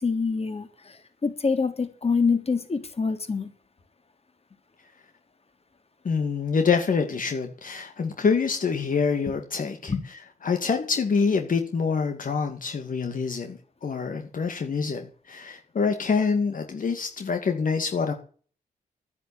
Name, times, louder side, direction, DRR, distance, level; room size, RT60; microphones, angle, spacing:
voice 1, 0.0-0.7 1.2-3.5 9.9-10.0, left 4 dB, 40° left, 3.2 m, -25 dB
voice 2, 6.0-18.1, left 5 dB, 60° left, 2.5 m, -26 dB
10.5 x 10.0 x 9.0 m
cardioid pair, 70°, 16 cm